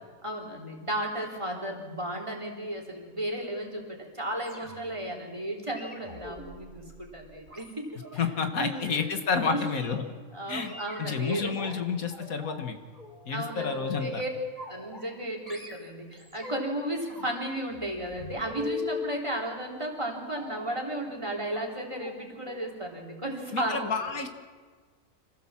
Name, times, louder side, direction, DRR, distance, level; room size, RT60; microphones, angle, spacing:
voice 1, 0.2-7.9 8.1-8.2 8.5-9.0 9.3-9.7 10.3-11.8 13.3-14.3 14.7-23.9, right 1 dB, 20° right, 1 dB, 3.4 m, -34 dB
sound 1, 4.4-5.0 5.7-8.2 8.6-9.0 9.7-10.0 10.6-11.7 12.1-12.6 12.9-14.2 14.6-15.2 15.5-16.8 17.1-19.2 20.3-20.8 21.5-21.6 21.9-22.1 22.5-22.7 23.0-23.1, left 3 dB, 30° left, 3.2 m, -41 dB
voice 2, 8.1-10.0 10.5-12.8 13.3-14.2 23.5-24.3, left 5 dB, 80° left, 6 dB, 2.0 m, -30 dB
26.0 x 15.5 x 7.4 m, 1.5 s
omnidirectional pair, 1.5 m